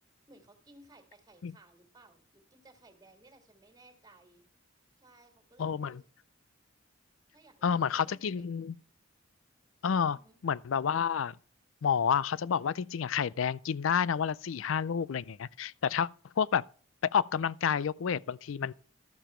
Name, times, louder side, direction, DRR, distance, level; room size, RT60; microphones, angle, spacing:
voice 1, 0.3-4.4 5.0-6.0 7.3-8.7 10.0-10.4, right 2 dB, 20° right, 2.2 m, -59 dB
voice 2, 5.6-6.0 7.6-8.8 9.8-10.2 10.4-11.4 11.8-16.1 16.4-16.6 17.1-18.7, left 7 dB, 75° left, 0.4 m, -29 dB
13.0 x 7.0 x 4.4 m
head